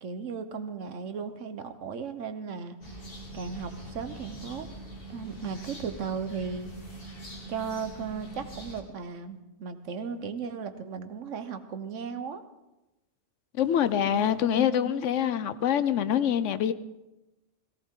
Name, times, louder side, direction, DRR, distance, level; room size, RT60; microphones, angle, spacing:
voice 1, 0.0-3.0 3.3-4.7 5.1-6.7 7.5-12.4 14.1-14.4, right 6 dB, 75° right, 1.3 m, -36 dB
sound 1, 2.8-8.8, right 1 dB, 45° left, 2.2 m, -43 dB
voice 2, 13.5-16.7, left 9 dB, 75° left, 1.0 m, -25 dB
18.5 x 17.0 x 3.8 m
omnidirectional pair, 1.3 m